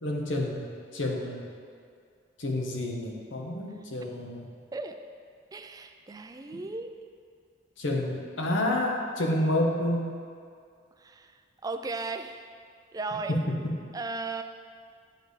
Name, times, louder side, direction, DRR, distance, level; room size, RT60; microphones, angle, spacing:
voice 1, 0.0-1.4 2.4-4.5 6.5-6.6 7.8-10.1 13.5-13.7, left 1 dB, 80° left, 0 dB, 1.0 m, -29 dB
voice 2, 5.5-6.9 11.0-12.4 12.9-13.4 13.9-14.4, right 3 dB, 20° right, 7 dB, 0.3 m, -36 dB
9.2 x 6.7 x 3.2 m, 2.2 s
head